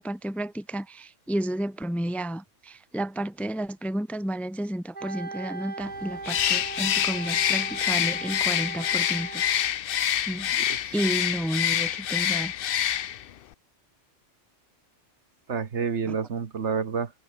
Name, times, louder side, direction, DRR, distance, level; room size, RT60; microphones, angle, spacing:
voice 1, 0.0-9.4 10.3-10.5 10.9-12.5 16.1-16.2, right 1 dB, ahead, 0.8 m, -31 dB
Wind instrument woodwind instrument, 4.9-9.7, right 3 dB, 35° right, 1.8 m, -39 dB
Bird, 6.2-13.3, left 10 dB, 55° left, 0.7 m, -26 dB
voice 2, 10.6-10.9 15.5-17.1, right 6 dB, 65° right, 1.7 m, -29 dB
omnidirectional pair, 1.3 m